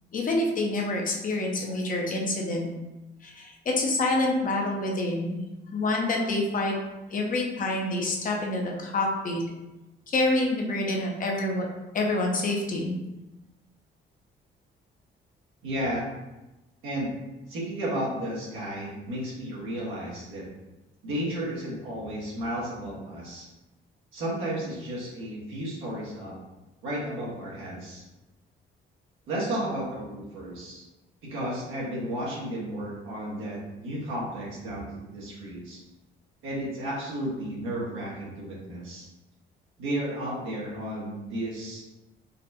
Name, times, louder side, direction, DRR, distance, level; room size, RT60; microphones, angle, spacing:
voice 1, 0.1-2.7 3.2-5.4 5.7-6.7 7.1-9.4 10.1-11.7 11.9-13.0, left 2 dB, 45° left, 0 dB, 0.7 m, -27 dB
voice 2, 15.6-16.1 16.8-17.1 17.5-20.4 21.0-23.5 24.1-26.3 26.8-28.0 29.3-30.8 31.3-35.8 36.4-39.1 39.8-41.8, right 1 dB, 90° right, -5 dB, 1.2 m, -33 dB
4.0 x 2.2 x 2.6 m, 1.0 s
cardioid pair, 90°, 20 cm